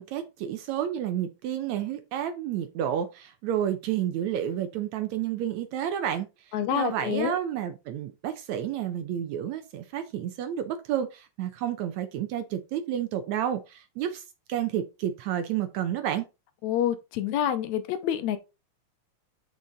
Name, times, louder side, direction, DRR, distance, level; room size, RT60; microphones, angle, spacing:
voice 1, 0.0-14.2 14.5-16.3, right 10 dB, 75° right, 2.1 m, -30 dB
voice 2, 6.5-7.4 16.6-18.4, left 10 dB, 80° left, 2.1 m, -27 dB
6.9 x 6.3 x 3.9 m
omnidirectional pair, 3.4 m